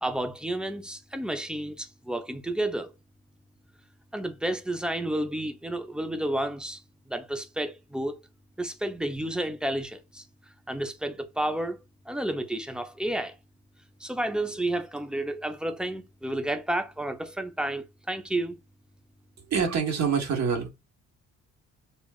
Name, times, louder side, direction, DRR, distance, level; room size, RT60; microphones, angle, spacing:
voice 1, 0.0-2.9 4.1-6.8 7.1-8.2 8.6-10.2 10.7-11.8 12.1-13.3 14.0-18.6, right 1 dB, 5° right, 0.7 m, -31 dB
voice 2, 19.5-20.7, right 6 dB, 65° right, 1.3 m, -25 dB
7.0 x 2.4 x 2.4 m
cardioid pair, 90°, 30 cm